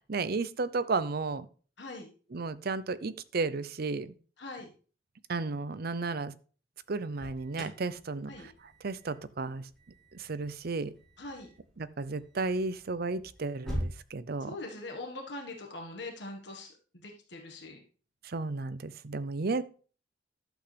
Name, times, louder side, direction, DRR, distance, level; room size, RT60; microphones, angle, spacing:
voice 1, 0.1-1.5 2.3-4.1 5.3-6.3 6.9-8.5 8.8-9.6 10.1-10.9 11.8-14.5 18.2-19.6, right 3 dB, 55° right, 15 dB, 0.6 m, -33 dB
voice 2, 1.8-2.1 4.4-4.7 8.3-8.5 11.2-11.5 14.5-16.7 17.0-17.8, left 2 dB, 65° left, 2 dB, 1.6 m, -42 dB
Alarm, 6.9-14.0, equal, 5° left, 4.1 m, -44 dB
11.5 x 8.0 x 3.4 m, 0.38 s
head